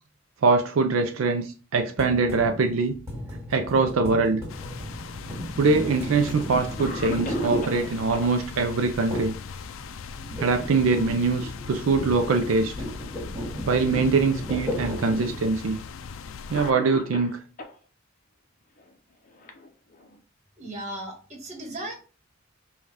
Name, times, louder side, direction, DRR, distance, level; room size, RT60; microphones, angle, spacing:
voice 1, 0.4-3.0 3.5-4.4 5.6-9.3 10.4-12.7 13.7-15.8 16.5-17.4, right 4 dB, 80° right, 0.4 m, -23 dB
sound 1, 2.0-8.3 9.1-9.5 9.7-15.4, equal, 15° right, 2.0 m, -34 dB
sound 2, 4.5-16.7, left 5 dB, 75° left, 0.4 m, -39 dB
Cough, 5.0-5.8 6.4-6.5 6.8-8.3 10.2-10.6 10.9-11.1 11.9-12.6 13.4-13.5 14.5-14.6 15.7-15.9 16.5-17.8 18.8-20.2, left 2 dB, 40° left, 0.7 m, -40 dB
voice 2, 20.6-21.9, right 1 dB, 35° right, 1.3 m, -36 dB
5.3 x 2.3 x 3.4 m
head